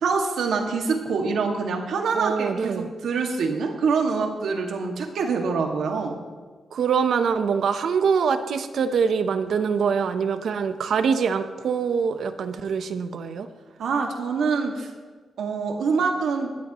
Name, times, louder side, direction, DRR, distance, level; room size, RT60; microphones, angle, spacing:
voice 1, 0.0-6.2 13.8-14.9 15.4-16.5, right 4 dB, 90° right, 2 dB, 2.0 m, -25 dB
voice 2, 2.1-2.9 6.7-13.5, right 6 dB, 60° right, 9 dB, 0.9 m, -24 dB
20.0 x 13.5 x 3.1 m, 1.5 s
wide cardioid pair, 175°, 0 cm